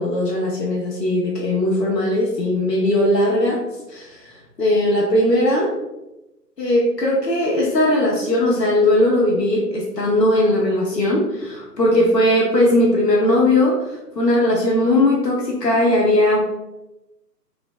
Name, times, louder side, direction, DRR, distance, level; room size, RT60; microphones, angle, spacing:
voice 1, 0.0-3.6 3.9-5.7 6.6-16.4, left 1 dB, 75° left, -3 dB, 1.0 m, -19 dB
3.0 x 2.8 x 3.2 m, 0.98 s
figure-of-eight pair, 140°, 49 cm